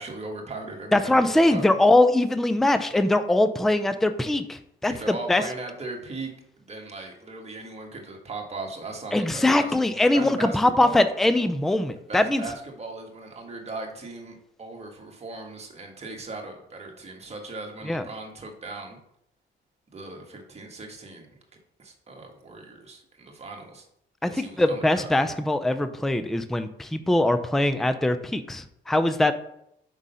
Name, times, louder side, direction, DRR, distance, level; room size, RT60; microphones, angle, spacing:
voice 1, 0.0-1.7 4.9-11.0 12.1-19.0 19.9-21.3 21.8-23.9 24.2-25.1, right 3 dB, 30° right, 1 dB, 1.5 m, -38 dB
voice 2, 0.9-5.4 9.1-12.4 17.9-18.0 24.2-29.3, left 1 dB, ahead, 10 dB, 0.4 m, -22 dB
5.4 x 3.6 x 5.5 m, 0.75 s
cardioid pair, 90°, 20 cm